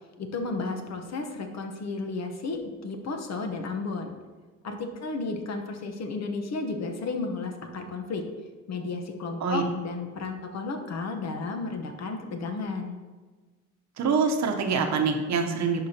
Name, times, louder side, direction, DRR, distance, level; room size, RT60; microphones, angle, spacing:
voice 1, 0.2-4.1 4.6-8.2 8.7-13.0, left 3 dB, 60° left, 4 dB, 1.0 m, -33 dB
voice 2, 14.0-15.9, right 5 dB, 65° right, 4 dB, 1.0 m, -25 dB
11.0 x 4.9 x 2.9 m, 1.3 s
cardioid pair, 90°, 30 cm